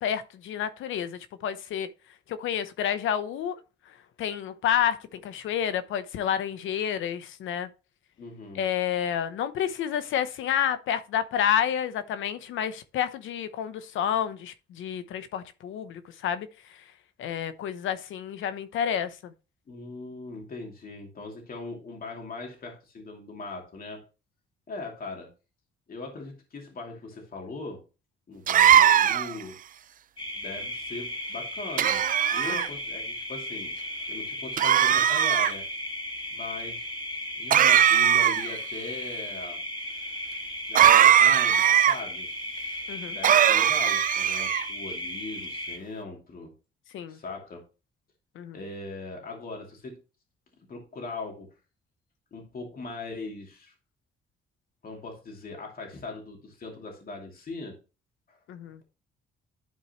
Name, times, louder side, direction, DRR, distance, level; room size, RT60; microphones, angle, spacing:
voice 1, 0.0-1.9 2.3-3.5 4.2-7.7 8.5-16.5 17.2-19.3 32.5-32.6 42.9-43.2 46.9-47.2 48.4-48.6 58.5-58.8, left 9 dB, 80° left, 0.8 m, -29 dB
voice 2, 8.2-8.6 19.7-24.0 24.7-25.3 25.9-27.8 28.3-29.6 30.4-33.7 34.1-35.6 36.3-36.9 37.4-39.6 40.7-42.3 43.1-46.5 47.1-47.6 48.5-50.0 50.7-51.5 52.3-53.7 54.8-57.8 58.3-58.4, left 3 dB, 45° left, 2.7 m, -40 dB
sound 1, 28.5-29.4 31.8-32.7 34.6-35.5 37.5-38.6 40.7-41.9 43.2-44.6, right 10 dB, 45° right, 0.4 m, -19 dB
sound 2, 30.2-45.8, left 1 dB, 25° left, 2.3 m, -36 dB
11.5 x 4.7 x 3.0 m
cardioid pair, 90°, 20 cm